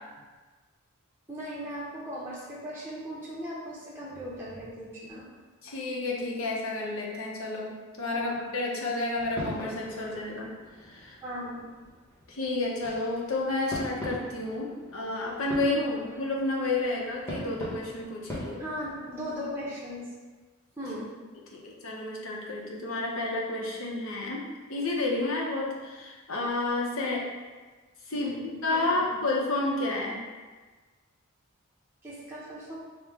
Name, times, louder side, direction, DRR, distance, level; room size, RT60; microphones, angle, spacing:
voice 1, 1.3-5.2 8.1-8.4 11.2-11.7 15.7-16.1 18.6-20.1 20.8-21.1 28.1-29.1 32.0-32.7, equal, 10° right, -8 dB, 0.6 m, -38 dB
voice 2, 5.6-10.5 10.8-11.2 12.3-15.8 16.2-18.6 21.5-27.2 28.1-28.3 28.6-30.2, left 2 dB, 70° left, -2 dB, 0.8 m, -30 dB
sound 1, 9.2-19.7, left 1 dB, 10° left, 1.0 m, -42 dB
5.3 x 2.1 x 3.5 m, 1.3 s
head